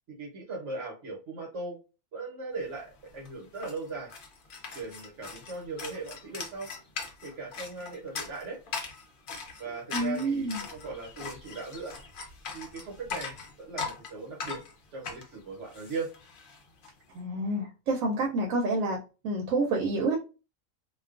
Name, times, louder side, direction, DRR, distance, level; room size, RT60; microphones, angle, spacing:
voice 1, 0.1-1.8 2.1-2.9 3.1-4.1 4.7-6.7 7.2-8.6 9.6-11.9 12.5-14.6 14.9-16.1, right 3 dB, 65° right, 1.1 m, -38 dB
sound 1, 2.7-2.8 3.0-16.9, left 5 dB, 55° left, 0.6 m, -40 dB
voice 2, 9.9-10.6 17.1-19.0 19.2-20.2, right 2 dB, 85° right, 1.0 m, -28 dB
2.5 x 2.3 x 2.4 m
omnidirectional pair, 1.4 m